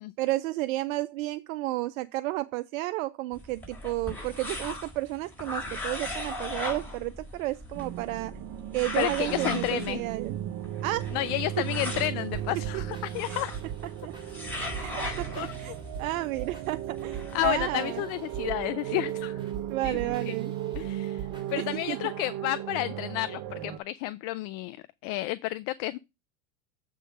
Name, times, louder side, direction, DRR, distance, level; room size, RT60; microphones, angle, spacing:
voice 1, 0.2-8.3 8.7-10.4 10.8-11.1 13.3-13.4 14.0-14.1 14.8-15.7 16.0-18.0 19.7-20.5 21.6-22.0, right 17 dB, 70° right, 0.6 m, -32 dB
sound 1, 3.3-17.6, left 1 dB, 5° left, 4.6 m, -39 dB
sound 2, 7.7-23.8, right 12 dB, 50° right, 1.0 m, -36 dB
voice 2, 9.0-10.0 11.1-13.5 15.3-15.5 17.3-19.4 19.8-20.4 20.7-24.8 25.0-26.0, left 17 dB, 50° left, 0.5 m, -31 dB
sound 3, 12.3-21.9, right 7 dB, 10° right, 3.1 m, -42 dB
7.8 x 3.8 x 6.2 m
hypercardioid pair, 105°, 42 cm